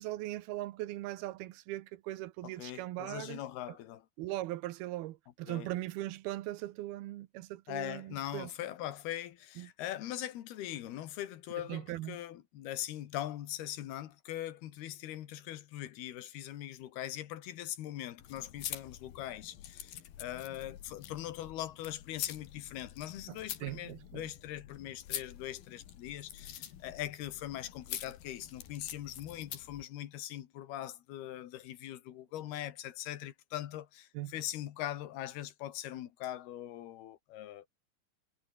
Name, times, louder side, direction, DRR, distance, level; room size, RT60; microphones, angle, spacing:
voice 1, 0.0-3.4 4.2-8.5 9.6-9.7 11.7-12.2 23.3-24.3 34.1-34.3, right 16 dB, 85° right, 2.9 m, -40 dB
voice 2, 2.4-4.1 5.5-5.7 7.7-37.7, left 13 dB, 90° left, 3.5 m, -41 dB
sound 1, 18.2-29.8, left 11 dB, 75° left, 3.7 m, -46 dB
omnidirectional pair, 4.4 m